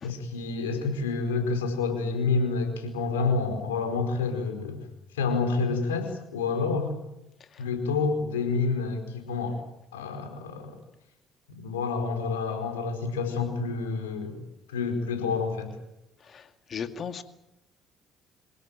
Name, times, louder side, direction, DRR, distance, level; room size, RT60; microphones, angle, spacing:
voice 1, 0.0-4.9 5.1-6.9 7.6-9.6 9.9-10.7 11.5-15.7, left 4 dB, 85° left, 5 dB, 4.7 m, -28 dB
voice 2, 16.7-17.2, left 7 dB, 50° left, 9 dB, 2.3 m, -35 dB
26.5 x 17.5 x 9.0 m, 0.87 s
hypercardioid pair, 55°, 0 cm